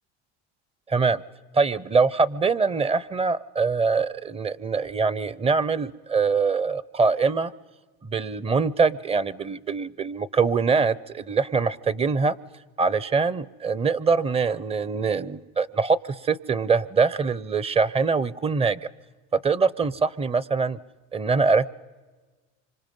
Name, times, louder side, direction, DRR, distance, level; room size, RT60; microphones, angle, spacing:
voice 1, 0.9-1.2 1.5-7.5 8.0-12.3 12.8-16.0 16.2-18.8 19.4-20.8 21.1-21.7, right 4 dB, 15° right, 20 dB, 0.6 m, -23 dB
27.0 x 25.5 x 5.4 m, 1.3 s
supercardioid pair, 105°, 34 cm